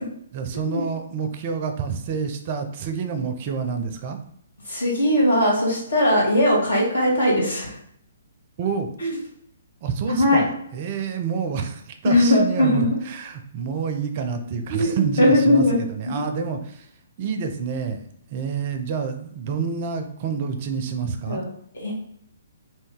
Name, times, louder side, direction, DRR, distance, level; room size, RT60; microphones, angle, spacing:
voice 1, 0.3-4.2 8.6-8.9 9.8-10.5 10.7-16.9 17.2-18.0 18.3-21.4, right 6 dB, 40° right, 6 dB, 0.4 m, -28 dB
voice 2, 4.6-7.7 9.0-9.1 10.1-10.4 12.0-12.9 14.7-15.8 16.1-16.3 21.3-21.5 21.7-21.9, left 1 dB, 70° left, -3 dB, 1.4 m, -19 dB
2.7 x 2.7 x 3.6 m, 0.69 s
figure-of-eight pair, 125°, 0 cm